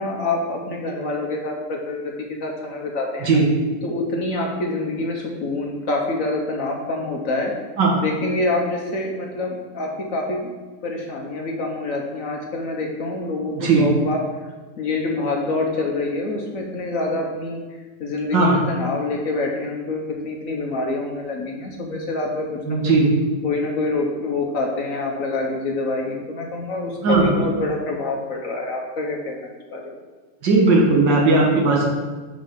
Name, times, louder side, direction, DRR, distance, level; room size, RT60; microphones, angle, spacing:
voice 1, 0.0-3.3 3.8-7.5 8.0-10.5 10.8-14.2 14.8-17.6 18.0-22.9 23.4-29.4 29.7-29.9, left 2 dB, 55° left, 1 dB, 1.1 m, -26 dB
voice 2, 22.7-23.1 27.0-27.3 30.4-31.9, right 3 dB, 80° right, -3 dB, 2.2 m, -17 dB
5.6 x 5.5 x 5.8 m, 1.3 s
omnidirectional pair, 1.9 m